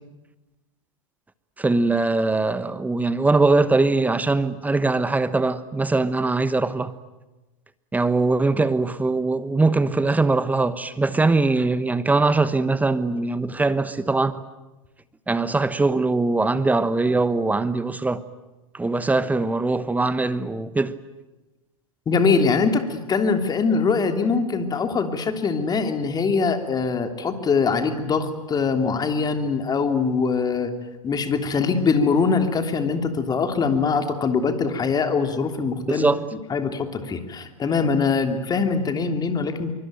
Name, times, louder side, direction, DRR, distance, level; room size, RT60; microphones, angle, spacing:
voice 1, 1.6-6.9 7.9-14.4 15.3-18.2 18.7-21.0 35.9-36.2, right 3 dB, 10° right, 1.2 m, -21 dB
voice 2, 22.1-30.7 31.0-36.1 36.5-39.7, left 5 dB, 20° left, 3.1 m, -22 dB
25.0 x 24.0 x 9.2 m
hypercardioid pair, 100°, 18 cm